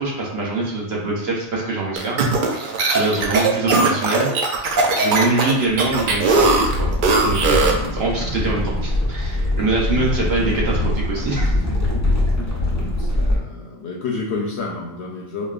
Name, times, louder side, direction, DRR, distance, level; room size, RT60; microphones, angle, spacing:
voice 1, 0.0-2.2 2.5-6.9 7.2-7.6 7.9-11.5, right 3 dB, 55° right, -3 dB, 0.8 m, -24 dB
sound 1, 2.0-7.9, right 3 dB, 80° right, 0.4 m, -19 dB
sound 2, 5.7-13.4, left 1 dB, 25° left, 0.3 m, -23 dB
voice 2, 12.7-15.5, left 3 dB, 65° left, -1 dB, 0.7 m, -30 dB
5.0 x 2.2 x 2.4 m, 0.83 s
omnidirectional pair, 1.4 m